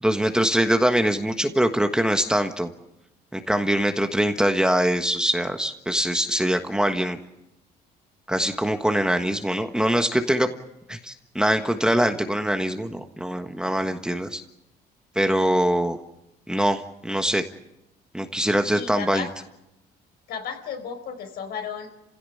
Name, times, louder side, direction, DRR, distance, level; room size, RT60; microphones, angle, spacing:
voice 1, 0.0-2.7 3.3-7.2 8.3-10.5 10.9-14.4 15.1-16.0 16.5-17.4 18.1-19.3, right 1 dB, 5° right, 6 dB, 1.4 m, -23 dB
voice 2, 18.7-19.3 20.3-22.0, left 7 dB, 70° left, 6 dB, 4.5 m, -34 dB
28.5 x 16.5 x 8.6 m, 0.88 s
cardioid pair, 110°, 17 cm